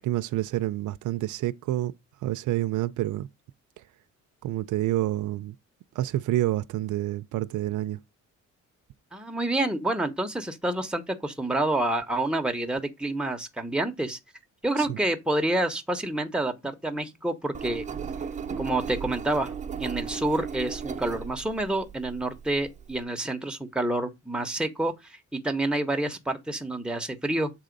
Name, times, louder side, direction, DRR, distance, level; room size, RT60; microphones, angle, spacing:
voice 1, 0.0-1.9 2.2-3.3 4.4-5.5 6.0-8.0 14.8-15.0, right 15 dB, 75° right, 0.5 m, -28 dB
voice 2, 9.1-14.2 14.6-17.8 18.6-19.5 19.8-27.5, right 1 dB, 5° right, 1.1 m, -28 dB
Engine, 17.5-23.0, right 7 dB, 25° right, 0.8 m, -36 dB
7.4 x 3.8 x 5.2 m
cardioid pair, 155°, 31 cm